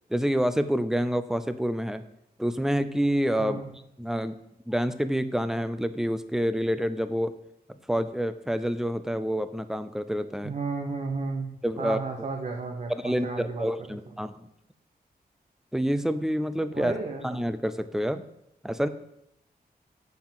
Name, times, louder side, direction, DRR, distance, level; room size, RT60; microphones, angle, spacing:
voice 1, 0.1-2.0 2.4-3.6 4.0-4.4 4.7-7.3 7.9-10.5 11.6-12.3 12.9-14.3 15.7-16.9 17.2-18.2 18.6-18.9, equal, 5° right, 11 dB, 0.5 m, -27 dB
voice 2, 10.4-13.7 16.7-17.2, right 4 dB, 45° right, 2 dB, 0.9 m, -33 dB
7.0 x 5.8 x 7.5 m, 0.79 s
wide cardioid pair, 180°, 17 cm